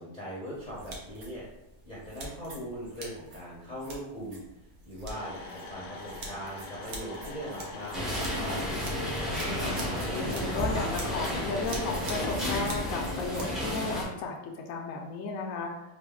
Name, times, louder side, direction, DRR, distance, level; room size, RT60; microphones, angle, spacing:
voice 1, 0.0-1.5 1.9-4.4 4.8-8.5, equal, 40° left, -7 dB, 0.6 m, -40 dB
sound 1, 0.5-13.5, right 2 dB, 65° right, 1.2 m, -45 dB
sound 2, 5.1-12.4, left 3 dB, 85° left, 1.3 m, -43 dB
sound 3, 7.9-14.0, equal, ahead, 0.3 m, -32 dB
voice 2, 9.3-15.9, left 4 dB, 70° left, 0 dB, 0.8 m, -35 dB
3.8 x 2.1 x 3.5 m, 0.91 s
omnidirectional pair, 1.8 m